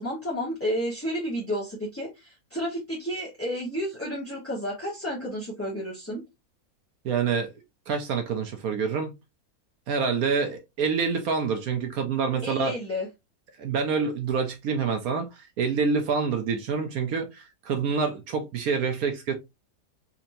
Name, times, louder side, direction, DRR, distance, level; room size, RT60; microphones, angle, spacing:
voice 1, 0.0-6.2 12.4-13.1, equal, 10° left, 0.9 m, -31 dB
voice 2, 7.0-7.5 7.9-9.1 9.9-12.7 13.6-19.3, right 5 dB, 70° right, 1.1 m, -27 dB
4.3 x 2.8 x 2.6 m
omnidirectional pair, 1.7 m